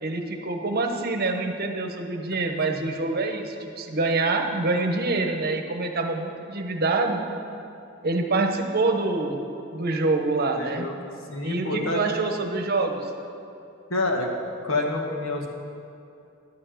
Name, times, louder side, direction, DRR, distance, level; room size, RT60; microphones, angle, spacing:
voice 1, 0.0-7.2 8.0-9.4 9.7-10.9 11.4-13.1, right 3 dB, 50° right, 4 dB, 0.9 m, -26 dB
voice 2, 10.6-12.0 13.9-14.3 14.6-15.5, left 2 dB, 75° left, 1 dB, 1.4 m, -28 dB
11.0 x 7.0 x 6.2 m, 2.7 s
head